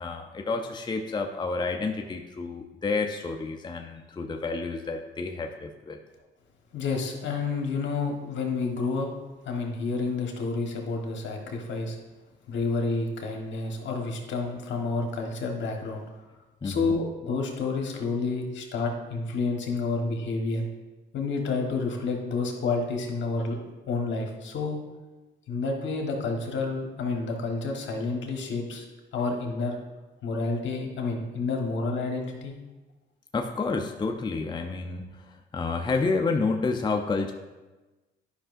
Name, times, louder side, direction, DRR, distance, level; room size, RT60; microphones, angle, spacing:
voice 1, 0.0-6.0 16.6-16.9 33.3-37.3, left 4 dB, 20° left, 3 dB, 0.6 m, -30 dB
voice 2, 6.7-9.1 9.4-12.0 12.5-16.0 16.6-20.7 21.1-23.6 23.9-24.8 25.5-28.8 29.1-29.8 30.2-32.5, left 3 dB, 70° left, 2 dB, 1.3 m, -29 dB
10.5 x 5.4 x 2.6 m, 1.2 s
cardioid pair, 90°, 20 cm